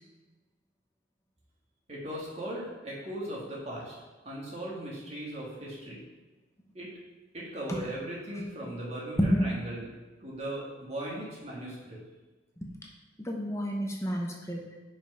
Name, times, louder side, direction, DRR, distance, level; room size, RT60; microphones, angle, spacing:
voice 1, 1.9-4.0 4.2-6.0 6.7-6.9 7.3-9.9 10.2-12.0, right 1 dB, 35° right, -5 dB, 2.0 m, -38 dB
voice 2, 9.2-9.5 12.6-12.7 13.2-14.7, equal, 15° left, 0 dB, 0.8 m, -29 dB
5.5 x 5.3 x 5.5 m, 1.2 s
head